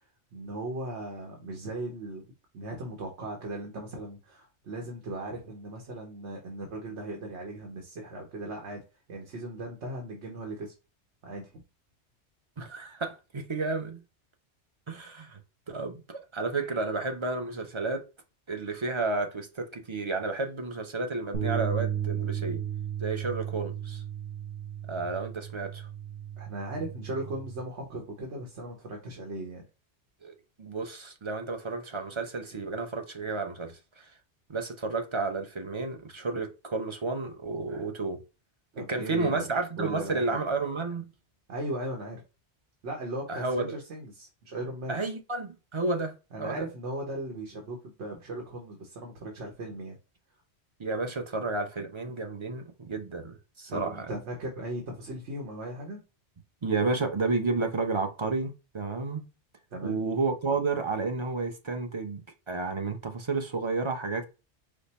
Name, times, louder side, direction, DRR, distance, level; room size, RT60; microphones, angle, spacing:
voice 1, 0.3-2.2 2.5-8.8 9.1-10.7 11.2-11.6 26.4-29.6 38.7-39.4 39.8-40.4 41.5-42.2 42.8-45.0 46.3-50.0 53.7-56.0 59.7-60.0, right 1 dB, 80° right, 1.3 m, -37 dB
voice 2, 12.6-14.0 14.9-15.4 15.7-18.0 18.5-22.6 23.0-24.0 24.9-25.9 30.2-34.1 34.5-38.2 38.9-41.1 43.3-43.8 44.9-46.6 50.8-54.1 56.6-59.2 59.8-62.2 62.5-64.2, right 3 dB, 35° right, 0.6 m, -31 dB
sound 1, 21.3-27.6, right 9 dB, 60° right, 1.1 m, -34 dB
5.1 x 2.0 x 4.1 m
omnidirectional pair, 1.2 m